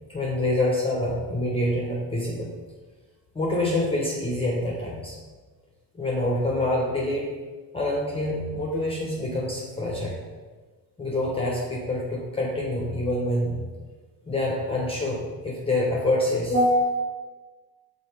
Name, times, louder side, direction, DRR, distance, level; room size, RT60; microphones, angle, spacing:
voice 1, 0.1-2.5 3.3-5.2 5.9-7.3 7.7-10.2 11.0-13.7 14.3-17.0, left 1 dB, 15° left, -3 dB, 1.2 m, -26 dB
5.4 x 4.3 x 4.8 m, 1.3 s
cardioid pair, 115°, 40 cm